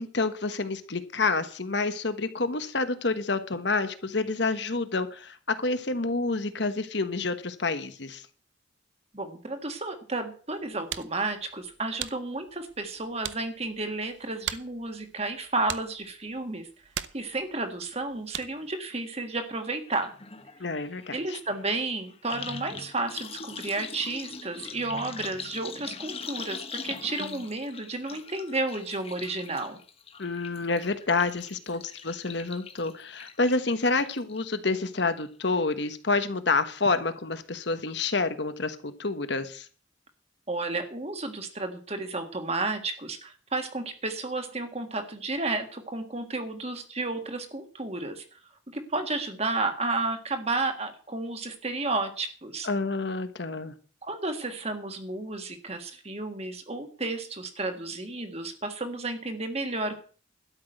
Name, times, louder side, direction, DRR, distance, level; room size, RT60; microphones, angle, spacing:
voice 1, 0.0-8.2 20.6-21.4 27.2-27.4 30.2-39.7 52.6-53.7, left 3 dB, 60° left, 10 dB, 1.3 m, -28 dB
voice 2, 9.1-16.7 17.1-20.1 21.1-29.8 40.5-48.2 48.7-52.7 54.0-60.0, right 3 dB, 35° right, 7 dB, 1.7 m, -32 dB
sound 1, 10.5-18.8, right 10 dB, 70° right, 0.8 m, -41 dB
sound 2, 19.3-19.5 19.7-34.4 34.8-35.3 35.5-35.6, left 5 dB, 30° left, 1.2 m, -42 dB
12.5 x 6.1 x 9.2 m, 0.40 s
head